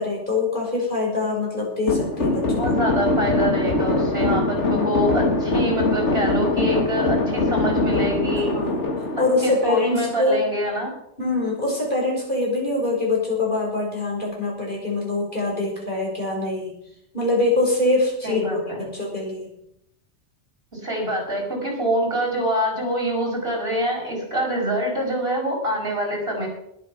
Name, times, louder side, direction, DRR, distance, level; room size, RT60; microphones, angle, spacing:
voice 1, 0.0-2.7 4.6-5.0 8.3-8.9 9.2-10.4 11.2-16.7 17.1-18.7 18.9-19.5, left 2 dB, 45° left, -3 dB, 6.0 m, -24 dB
sound 1, 1.9-10.2, left 2 dB, 85° left, 2.2 m, -22 dB
voice 2, 2.6-8.5 9.4-10.9 18.2-18.9 20.7-26.5, equal, 60° right, -1 dB, 5.5 m, -25 dB
20.5 x 8.6 x 5.8 m, 0.77 s
omnidirectional pair, 1.2 m